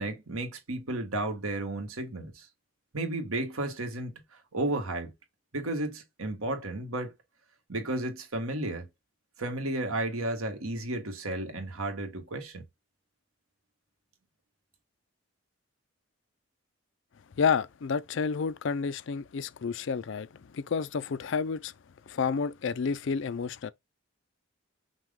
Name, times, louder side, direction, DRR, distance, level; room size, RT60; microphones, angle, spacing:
voice 1, 0.0-2.5 2.9-5.1 5.5-7.1 7.7-8.9 9.4-12.6, right 2 dB, 75° right, 1.5 m, -33 dB
voice 2, 17.4-20.3 20.5-21.7 22.1-23.7, left 5 dB, 55° left, 0.4 m, -30 dB
5.9 x 2.3 x 3.6 m
head